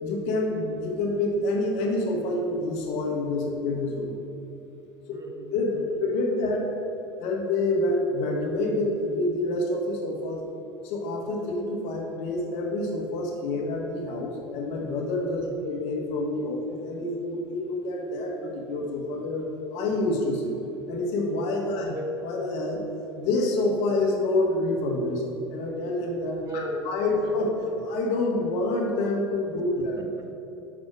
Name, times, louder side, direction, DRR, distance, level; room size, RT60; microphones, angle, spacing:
voice 1, 0.0-4.2 5.5-6.7 7.2-10.4 10.8-20.6 20.9-21.9 22.2-22.8 23.2-25.2 25.5-27.5 27.8-30.0, left 2 dB, 60° left, 0 dB, 1.4 m, -27 dB
voice 2, 5.1-6.0 15.4-15.7 21.7-22.2 26.4-26.9 29.8-30.3, equal, 25° right, 4 dB, 0.9 m, -37 dB
6.0 x 4.2 x 6.1 m, 3.0 s
hypercardioid pair, 80°, 13 cm